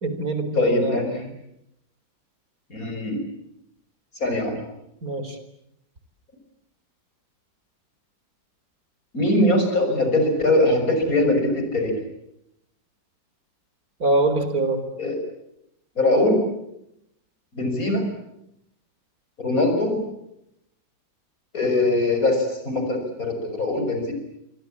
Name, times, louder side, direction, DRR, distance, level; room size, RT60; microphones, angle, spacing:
voice 1, 0.0-1.0 5.0-5.4 14.0-14.8, right 2 dB, 50° right, 9 dB, 4.6 m, -23 dB
voice 2, 0.5-1.3 2.7-3.2 4.2-4.6 9.1-11.9 15.0-15.2 16.0-16.4 17.5-18.1 19.4-20.0 21.5-24.1, left 2 dB, 50° left, 5 dB, 6.5 m, -22 dB
27.5 x 25.0 x 8.7 m, 0.81 s
omnidirectional pair, 1.9 m